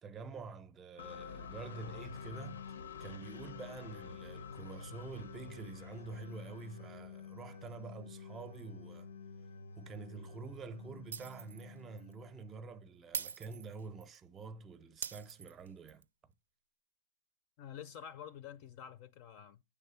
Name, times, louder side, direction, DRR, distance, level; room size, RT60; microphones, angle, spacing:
voice 1, 0.0-2.6 3.0-9.1 9.8-16.0, right 4 dB, 15° right, 0.7 m, -47 dB
sound 1, 1.0-12.8, left 5 dB, 85° left, 0.7 m, -49 dB
Shatter, 11.1-11.7 12.0-12.1 13.1-14.2 15.0-16.0, right 7 dB, 85° right, 0.6 m, -43 dB
voice 2, 17.6-19.6, left 9 dB, 35° left, 0.5 m, -48 dB
8.9 x 3.6 x 6.8 m
hypercardioid pair, 155°, 0 cm